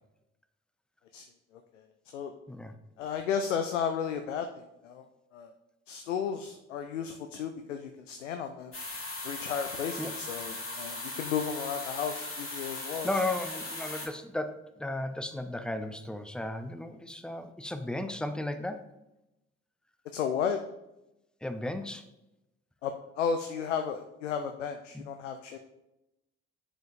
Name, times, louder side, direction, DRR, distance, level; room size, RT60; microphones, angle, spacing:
voice 1, 3.0-5.1 5.3-5.5 5.9-8.7 9.2-13.1 20.1-20.6 22.8-25.6, left 7 dB, 80° left, 7 dB, 0.5 m, -33 dB
sound 1, 8.7-14.1, left 2 dB, 35° left, 1.9 m, -38 dB
voice 2, 13.0-18.8 21.4-22.1 24.9-25.0, left 1 dB, ahead, 9 dB, 0.7 m, -35 dB
10.5 x 5.0 x 2.7 m, 0.90 s
figure-of-eight pair, 45°, 36 cm